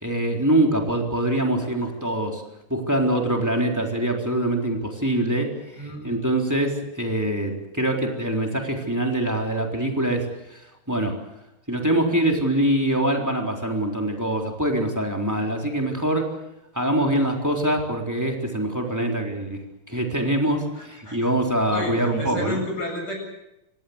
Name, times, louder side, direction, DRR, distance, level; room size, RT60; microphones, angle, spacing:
voice 1, 0.0-2.4 2.7-5.5 5.8-10.6 10.9-11.1 11.7-16.3 16.7-19.6 19.9-22.6, right 1 dB, 10° right, 2 dB, 3.8 m, -24 dB
voice 2, 5.8-6.2 15.3-15.5 18.9-19.0 20.5-23.1, left 1 dB, 50° left, 1 dB, 8.4 m, -33 dB
26.0 x 17.5 x 8.1 m, 0.87 s
omnidirectional pair, 2.3 m